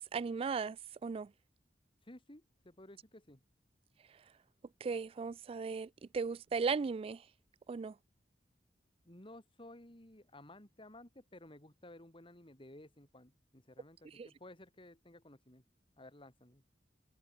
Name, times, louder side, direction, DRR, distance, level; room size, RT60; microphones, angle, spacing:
voice 1, 0.1-0.8 1.0-1.3 4.8-7.2 7.7-7.9 14.1-14.3, right 5 dB, 35° right, 0.3 m, -36 dB
voice 2, 2.1-3.4 9.0-15.6 16.0-16.6, left 1 dB, 30° left, 3.4 m, -55 dB
head